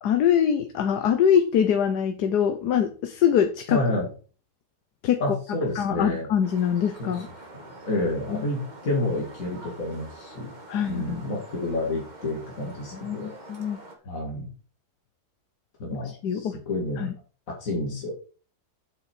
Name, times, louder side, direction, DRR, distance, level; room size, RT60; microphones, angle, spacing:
voice 1, 0.0-3.8 5.0-5.3 5.8-7.3 10.7-11.2 12.9-13.8 16.0-16.6 17.0-17.1, left 8 dB, 90° left, 8 dB, 1.5 m, -23 dB
voice 2, 3.7-4.1 5.2-6.3 7.0-7.2 7.5-10.5 10.9-13.3 14.0-14.5 15.8-17.1 17.6-18.1, left 1 dB, 60° left, -1 dB, 2.6 m, -29 dB
sound 1, 6.4-13.9, right 2 dB, 30° right, 2.1 m, -45 dB
8.2 x 7.9 x 4.5 m, 0.38 s
omnidirectional pair, 1.7 m